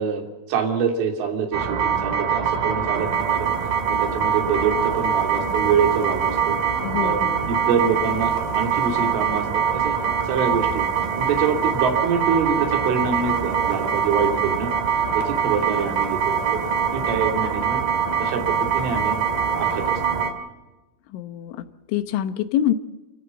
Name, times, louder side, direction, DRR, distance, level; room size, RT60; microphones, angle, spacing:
voice 1, 0.0-3.5 3.9-6.6 7.0-10.0 10.3-10.9 11.2-14.7 15.1-16.6 16.9-17.8 18.2-19.2 19.5-20.0, right 6 dB, 85° right, 3 dB, 5.3 m, -25 dB
sound 1, 1.5-20.3, right 7 dB, 55° right, 3.4 m, -23 dB
voice 2, 6.8-7.6 21.1-22.7, left 11 dB, 80° left, 11 dB, 3.3 m, -26 dB
30.0 x 14.5 x 7.1 m, 1.1 s
omnidirectional pair, 5.5 m